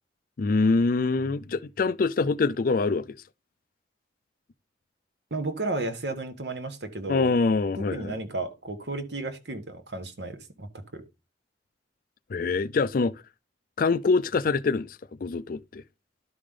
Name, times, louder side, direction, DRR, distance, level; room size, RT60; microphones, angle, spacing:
voice 1, 0.4-3.2 7.1-8.2 12.3-13.2 13.8-15.8, left 4 dB, 50° left, 0.4 m, -25 dB
voice 2, 5.3-7.4 7.8-11.0, right 2 dB, 65° right, 1.3 m, -33 dB
12.0 x 5.0 x 3.6 m
head